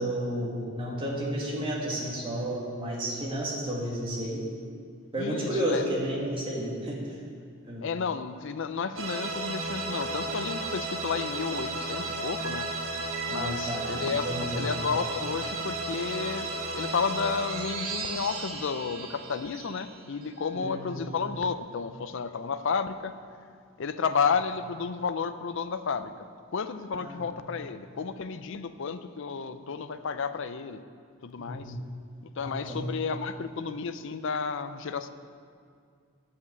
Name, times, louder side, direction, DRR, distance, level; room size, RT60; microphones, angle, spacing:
voice 1, 0.0-4.4 5.1-7.0 7.7-7.8 13.3-14.7 20.5-21.1 26.9-27.1 31.4-31.7 32.4-32.8, right 1 dB, 25° right, -4 dB, 2.1 m, -32 dB
voice 2, 5.2-6.0 7.8-12.7 13.3-23.2 23.8-26.1 26.5-30.8 31.2-31.7 32.4-35.1, left 5 dB, 65° left, 11 dB, 0.5 m, -32 dB
sound 1, 9.0-20.4, right 2 dB, 80° right, 1.5 m, -34 dB
10.5 x 5.7 x 8.0 m, 2.2 s
head